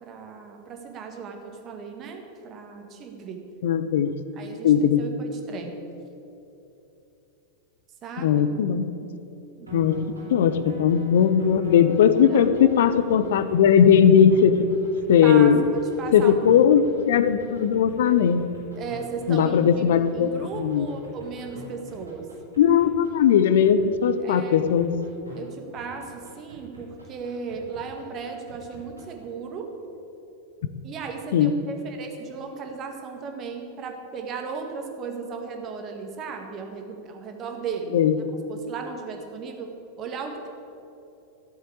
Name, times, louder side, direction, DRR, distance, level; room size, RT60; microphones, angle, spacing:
voice 1, 0.0-3.4 4.4-4.7 5.0-5.8 8.0-8.5 9.6-9.7 12.3-12.9 15.2-16.7 18.7-22.3 24.2-24.6 25.4-29.7 30.8-37.9 38.5-39.7 40.0-40.5, right 5 dB, 30° right, 3 dB, 1.9 m, -36 dB
voice 2, 3.6-4.1 4.6-5.0 8.2-8.9 9.7-10.0 10.3-14.7 15.1-15.6 16.1-18.4 19.3-20.9 22.6-24.9 31.3-31.5 37.9-38.2, left 8 dB, 55° left, 12 dB, 0.7 m, -18 dB
sound 1, 9.7-25.4 25.8-29.2, right 1 dB, 85° right, 3.8 m, -43 dB
13.0 x 7.9 x 8.5 m, 2.9 s
figure-of-eight pair, 90°, 0 cm